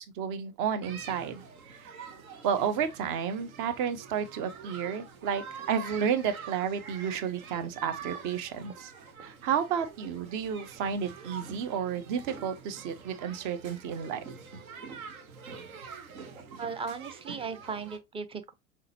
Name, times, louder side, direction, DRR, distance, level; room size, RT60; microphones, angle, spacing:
voice 1, 0.0-1.4 1.7-1.9 2.4-8.9 9.2-14.2, right 7 dB, 45° right, 0.9 m, -31 dB
sound 1, 0.8-18.0, right 6 dB, 75° right, 1.0 m, -46 dB
voice 2, 16.6-18.5, right 5 dB, 15° right, 0.5 m, -37 dB
4.2 x 3.7 x 2.8 m
figure-of-eight pair, 75°, 43 cm